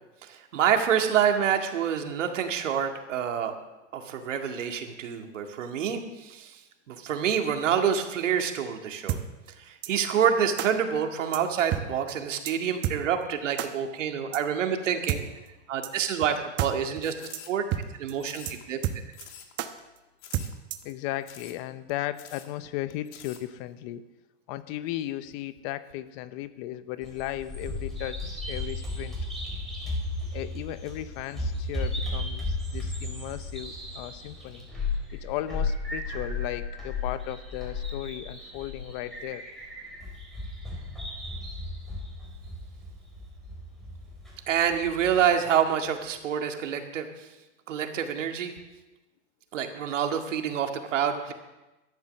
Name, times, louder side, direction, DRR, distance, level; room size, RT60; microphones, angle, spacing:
voice 1, 0.2-3.5 3.9-6.6 6.9-9.2 9.6-15.3 15.7-17.6 18.0-18.8 44.5-47.3 47.7-48.5 49.5-51.3, right 8 dB, 80° right, 4 dB, 2.1 m, -27 dB
sound 1, 9.1-9.2 9.8-9.9 10.6-10.7 11.3-11.4 11.7-11.8 12.1-12.2 12.5-12.6 12.8-13.0 13.6-13.7 14.3-14.4 15.1-15.2 15.8-15.9 16.2-16.3 16.6-16.7 17.0-17.1 17.3-17.4 17.7-17.8 18.1-18.2 18.5-18.6 18.8-19.3 19.6-19.7 20.3-20.9, right 12 dB, 30° right, 0.9 m, -29 dB
sound 2, 17.0-17.8 18.2-18.8 19.1-19.5 19.8-19.9 20.2-20.6 20.8-20.9 21.2-21.6 21.9-22.0 22.2-22.5 22.9-23.4, left 9 dB, 65° left, 2.2 m, -47 dB
voice 2, 20.8-24.0 24.5-29.2 30.3-34.7 35.1-39.5, left 14 dB, 40° left, 14 dB, 0.8 m, -36 dB
Bird vocalization bird call bird song, 27.0-45.1, left 2 dB, ahead, 4.5 m, -34 dB
13.0 x 10.5 x 6.6 m, 1.0 s
hypercardioid pair, 135°, 37 cm